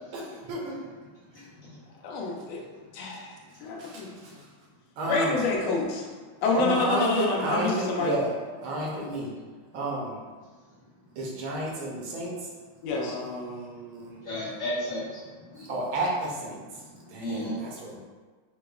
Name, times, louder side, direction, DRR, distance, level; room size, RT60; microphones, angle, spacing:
voice 1, 0.1-0.7 3.8-4.3 5.0-5.4 6.5-8.3 8.6-9.3 9.7-10.1 11.2-12.3 12.9-14.1 15.7-16.6 17.1-18.0, right 1 dB, 75° right, -3 dB, 1.4 m, -31 dB
voice 2, 1.3-1.7 14.2-15.2 15.5-15.7 16.9-17.6, equal, 50° left, -10 dB, 1.0 m, -33 dB
voice 3, 2.0-2.6 2.9-4.1 5.0-6.1 6.4-8.2 12.8-13.2, left 3 dB, 90° left, -1 dB, 1.5 m, -28 dB
4.8 x 2.0 x 2.3 m, 1.4 s
omnidirectional pair, 2.3 m